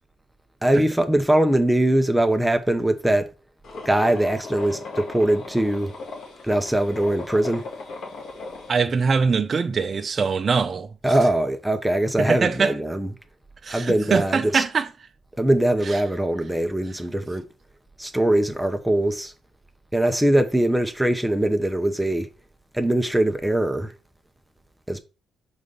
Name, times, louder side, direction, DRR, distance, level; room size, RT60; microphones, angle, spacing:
voice 1, 0.6-3.3 3.8-5.9 6.4-7.7 11.0-13.1 13.7-14.6 15.4-17.5 18.0-19.3 19.9-22.3 22.7-23.9 24.9-25.0, right 1 dB, 5° right, 0.8 m, -22 dB
sound 1, 3.6-8.8, left 3 dB, 65° left, 1.8 m, -37 dB
voice 2, 8.7-11.2 12.2-12.8 13.6-14.9, right 5 dB, 40° right, 0.6 m, -22 dB
5.1 x 4.0 x 5.4 m
cardioid pair, 90°, 0 cm